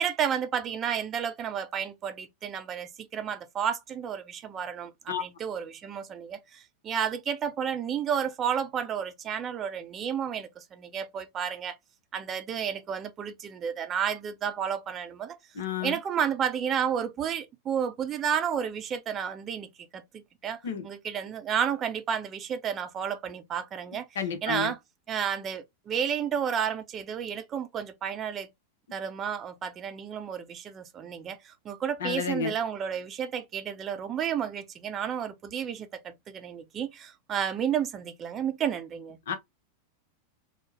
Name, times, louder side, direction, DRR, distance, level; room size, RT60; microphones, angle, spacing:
voice 1, 0.0-11.8 12.1-15.4 15.8-19.7 19.9-24.1 24.4-24.8 25.1-28.5 28.9-39.2, right 8 dB, 25° right, 0.5 m, -31 dB
voice 2, 15.6-16.0 20.6-20.9 24.2-24.7 32.0-32.5 39.3-39.4, left 7 dB, 60° left, 0.6 m, -31 dB
3.2 x 2.0 x 3.0 m
figure-of-eight pair, 90°, 0 cm